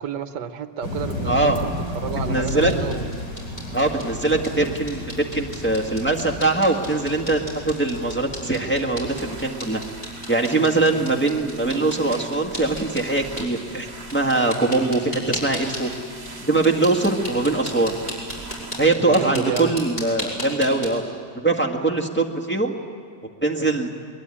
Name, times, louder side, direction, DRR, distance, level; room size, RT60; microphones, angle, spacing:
voice 1, 0.0-3.1 4.6-4.8 10.9-11.2 19.1-19.8, right 7 dB, 75° right, 10 dB, 1.5 m, -31 dB
sound 1, 0.8-9.1, left 2 dB, 75° left, 4.9 m, -32 dB
voice 2, 1.3-1.6 2.3-2.7 3.7-9.8 10.3-15.9 16.4-17.9 18.8-21.0 21.4-22.7 23.4-23.9, right 2 dB, 5° left, 1 dB, 1.8 m, -22 dB
sound 2, 2.1-20.9, equal, 25° left, 5.7 m, -37 dB
sound 3, 9.0-18.9, right 3 dB, 25° right, 1.6 m, -42 dB
22.5 x 22.0 x 9.9 m, 2.2 s
omnidirectional pair, 1.9 m